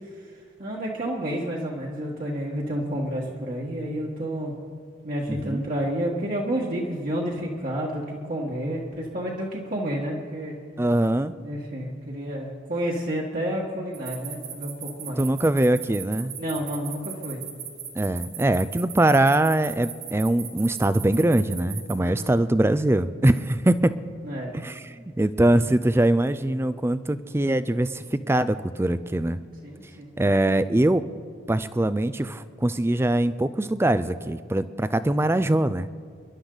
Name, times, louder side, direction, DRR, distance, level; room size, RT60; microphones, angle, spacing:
voice 1, 0.6-4.5 5.0-10.5 11.4-15.2 16.4-17.4 22.0-22.4 24.2-24.6 29.6-30.1, equal, 45° right, -4 dB, 1.6 m, -30 dB
voice 2, 5.3-5.6 10.8-11.3 15.2-16.3 17.9-24.0 24.5-29.4 30.2-31.0 31.5-35.9, right 1 dB, 10° right, 14 dB, 0.3 m, -22 dB
sound 1, 13.9-21.9, right 9 dB, 85° right, 2.4 m, -37 dB
27.5 x 12.0 x 3.9 m, 2.1 s
head